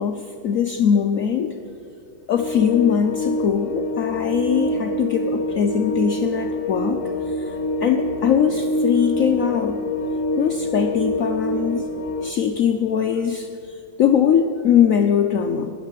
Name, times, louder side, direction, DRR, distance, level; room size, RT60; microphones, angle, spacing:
voice 1, 0.0-1.6 2.3-7.0 7.3-7.5 7.8-9.8 10.4-11.9 12.2-15.7, left 8 dB, 90° left, 6 dB, 0.7 m, -21 dB
sound 1, 2.3-12.3, left 1 dB, 50° left, 0.9 m, -25 dB
12.0 x 9.9 x 7.5 m, 2.5 s
omnidirectional pair, 2.2 m